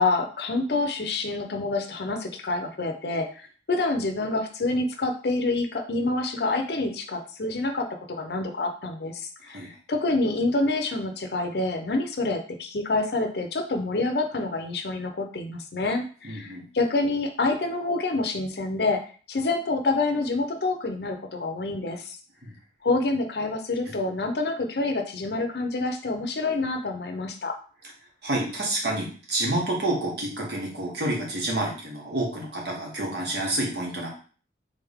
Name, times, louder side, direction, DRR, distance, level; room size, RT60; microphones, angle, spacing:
voice 1, 0.0-19.0 19.3-22.2 22.8-27.5, left 2 dB, 65° left, 5 dB, 0.7 m, -27 dB
voice 2, 9.4-9.8 16.2-16.6 22.4-22.5 28.2-34.1, right 1 dB, 65° right, -1 dB, 1.5 m, -29 dB
3.9 x 3.5 x 3.5 m, 0.40 s
head